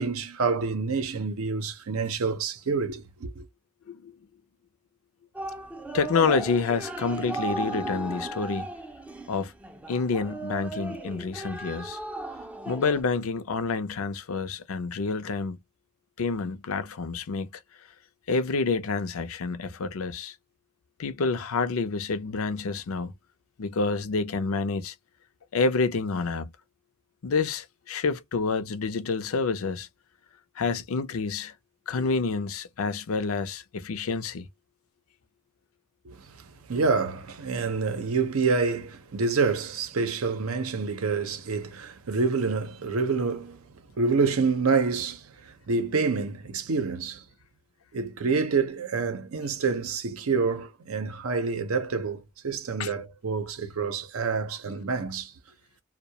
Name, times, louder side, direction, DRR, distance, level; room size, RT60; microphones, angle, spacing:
voice 1, 0.0-3.4 36.0-43.6 44.0-47.2 47.9-55.3, right 4 dB, 85° right, 0.7 m, -27 dB
sound 1, 5.3-13.0, right 2 dB, 5° right, 0.3 m, -36 dB
voice 2, 5.9-8.7 9.3-9.5 9.9-12.0 12.7-15.6 16.2-17.5 18.3-20.3 21.0-23.1 23.6-24.9 25.5-26.5 27.2-29.9 30.6-31.5 31.9-34.5 52.8-52.9, left 4 dB, 80° left, 0.5 m, -28 dB
2.3 x 2.1 x 2.7 m
head